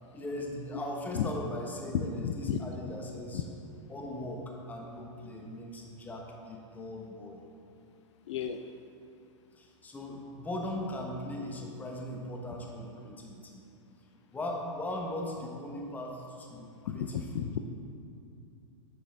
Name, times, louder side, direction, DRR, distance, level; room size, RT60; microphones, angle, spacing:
voice 1, 0.1-3.4 3.9-7.4 9.5-13.6 14.0-17.5, left 1 dB, 10° left, 0 dB, 0.9 m, -39 dB
voice 2, 1.9-2.6 3.3-3.4 8.3-8.6 16.9-17.6, left 8 dB, 65° left, 7 dB, 0.4 m, -32 dB
8.0 x 6.2 x 3.3 m, 2.6 s
hypercardioid pair, 125°, 16 cm